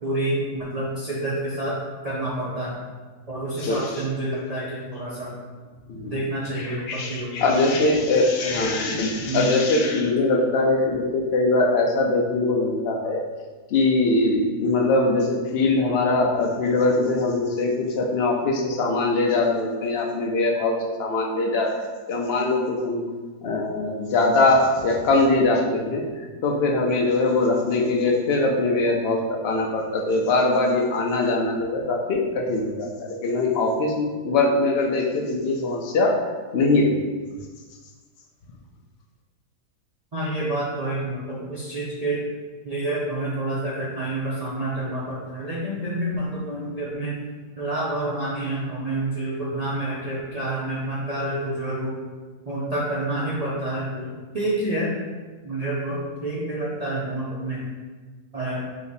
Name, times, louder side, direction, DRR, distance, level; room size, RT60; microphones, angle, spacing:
voice 1, 0.0-1.8 2.0-2.8 3.3-5.3 6.0-7.6 8.5-8.7 9.2-9.4 40.1-42.2 42.6-47.2 47.6-51.9 52.5-54.9 55.4-57.7 58.3-58.7, right 1 dB, 60° right, -8 dB, 0.4 m, -28 dB
voice 2, 3.5-4.0 5.9-6.2 6.6-13.2 13.7-23.0 23.4-36.2 36.5-37.0, left 2 dB, 65° left, 1 dB, 0.6 m, -22 dB
3.4 x 3.0 x 4.1 m, 1.4 s
omnidirectional pair, 1.7 m